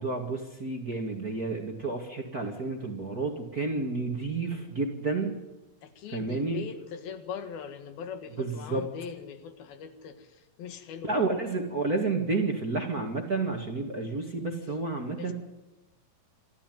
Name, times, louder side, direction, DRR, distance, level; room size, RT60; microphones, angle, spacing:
voice 1, 0.0-5.3 6.1-6.6 8.4-8.8 11.0-15.3, right 3 dB, 35° right, 2 dB, 1.7 m, -30 dB
voice 2, 5.8-11.3 15.1-15.3, left 7 dB, 85° left, 9 dB, 3.5 m, -41 dB
26.0 x 14.5 x 9.3 m, 1.0 s
omnidirectional pair, 4.2 m